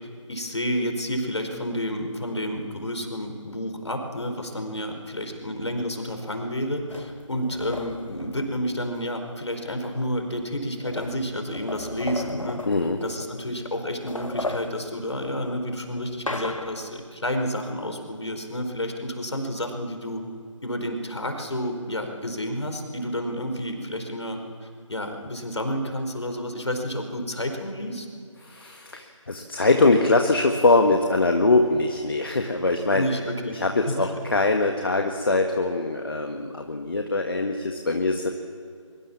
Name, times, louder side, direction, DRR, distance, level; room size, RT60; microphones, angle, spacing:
voice 1, 0.3-12.6 13.0-20.2 20.6-28.1 32.9-33.6 33.9-34.1, equal, 60° left, 5 dB, 4.7 m, -30 dB
sound 1, 6.9-9.1 10.1-10.2 10.4-13.5 13.9-17.0, left 2 dB, 80° left, 1.7 m, -36 dB
voice 2, 12.7-13.0 28.4-33.1 33.5-38.3, left 3 dB, 45° left, 4 dB, 1.6 m, -22 dB
23.5 x 23.0 x 7.3 m, 2.2 s
figure-of-eight pair, 160°, 17 cm